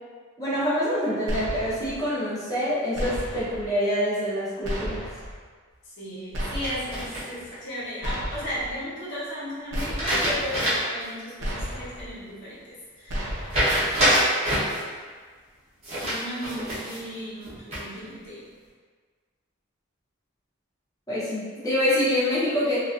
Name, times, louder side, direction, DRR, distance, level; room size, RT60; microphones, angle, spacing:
voice 1, 0.4-5.0 21.1-22.8, equal, 15° left, -10 dB, 0.7 m, -26 dB
sound 1, 1.3-2.0 2.9-3.6 4.6-5.3 6.3-7.0 8.0-8.7 9.7-10.4 11.4-12.1 13.1-13.8, equal, 60° right, 0.7 m, -32 dB
voice 2, 5.8-13.4 16.0-18.5, equal, 55° left, -9 dB, 1.0 m, -36 dB
sound 2, 6.6-7.5 9.7-11.0 11.4-11.5 13.5-14.8 15.8-17.0 17.4-18.0, equal, 30° right, 0.9 m, -25 dB
3.0 x 2.4 x 2.5 m, 1.5 s
head